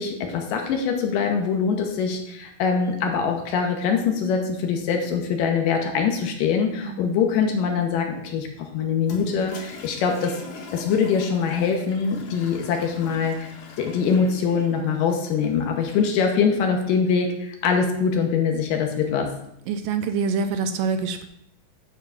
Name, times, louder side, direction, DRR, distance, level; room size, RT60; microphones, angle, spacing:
voice 1, 0.0-10.4 10.7-13.4 13.8-19.3, left 6 dB, 75° left, 3 dB, 2.7 m, -23 dB
Toilet flush, 9.0-16.2, left 4 dB, 60° left, 1.8 m, -43 dB
voice 2, 19.7-21.3, right 5 dB, 80° right, 8 dB, 2.1 m, -25 dB
9.3 x 3.8 x 7.0 m, 0.76 s
omnidirectional pair, 4.1 m